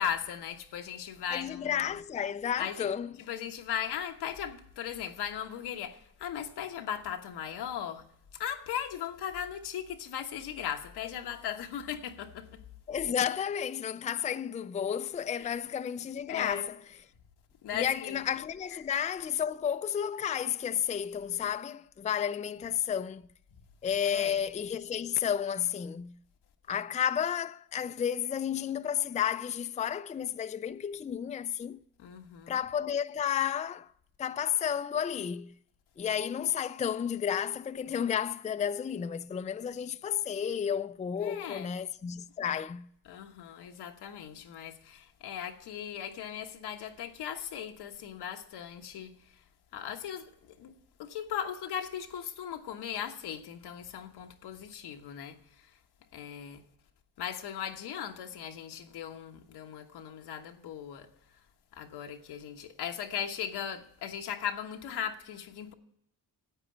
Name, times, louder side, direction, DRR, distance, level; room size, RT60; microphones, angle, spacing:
voice 1, 0.0-2.0 2.6-2.9 3.2-8.1 8.3-12.6 15.4-15.6 16.3-16.7 17.6-18.2 18.7-18.8 24.0-24.4 32.0-32.6 41.2-41.7 43.0-49.4 49.7-50.7 51.0-55.7 56.1-56.6 57.2-61.1 61.7-65.7, left 9 dB, 90° left, 1.2 m, -38 dB
voice 2, 1.3-3.1 12.9-16.8 17.7-23.2 23.8-26.2 26.7-31.8 32.5-33.9 34.2-35.5 36.0-42.9, left 8 dB, 20° left, 0.4 m, -32 dB
9.6 x 8.4 x 8.6 m
cardioid pair, 75°, 39 cm